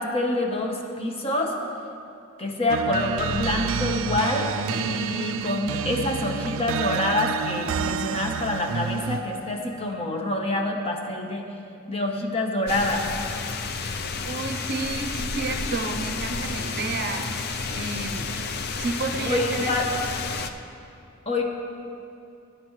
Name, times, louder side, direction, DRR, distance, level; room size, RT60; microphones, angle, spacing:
voice 1, 0.0-1.5 2.4-11.5 11.9-13.0 19.2-19.9 21.3-21.4, left 2 dB, 30° left, 1 dB, 1.1 m, -26 dB
sound 1, 2.7-9.4, right 7 dB, 65° right, 0.3 m, -29 dB
sound 2, 12.7-20.5, left 4 dB, 50° left, 0.5 m, -31 dB
voice 2, 14.2-17.4 17.7-18.3 18.8-19.7, right 3 dB, 50° right, 5 dB, 0.7 m, -31 dB
19.0 x 9.2 x 3.2 m, 2.6 s
head